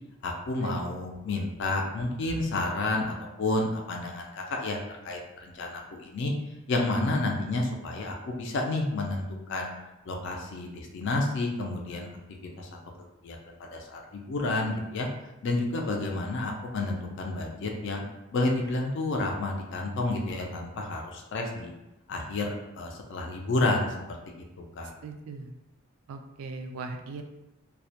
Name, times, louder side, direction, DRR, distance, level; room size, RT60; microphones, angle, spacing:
voice 1, 0.2-4.8 5.0-6.3 6.7-9.7 10.1-12.1 12.6-12.7 13.2-15.1 15.4-18.0 18.3-21.7 22.1-24.4 24.8-24.9, left 2 dB, 55° left, 1 dB, 0.4 m, -30 dB
voice 2, 25.0-25.5 26.1-27.2, right 3 dB, 80° right, 5 dB, 0.3 m, -38 dB
2.2 x 2.1 x 2.7 m, 0.95 s
head